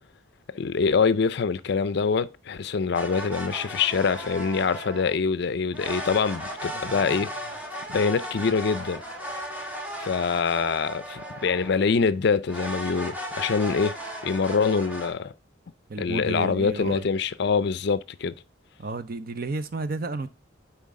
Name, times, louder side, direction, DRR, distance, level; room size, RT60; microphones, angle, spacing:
voice 1, 0.5-7.4 7.9-9.0 10.0-14.0 14.2-15.3 16.0-18.3, left 5 dB, 55° left, 0.4 m, -25 dB
sound 1, 2.9-5.2 5.7-11.9 12.5-15.1, equal, 10° right, 1.4 m, -36 dB
voice 2, 6.7-7.3 15.9-17.1 18.8-20.3, right 3 dB, 50° right, 0.6 m, -32 dB
7.2 x 4.6 x 3.7 m
head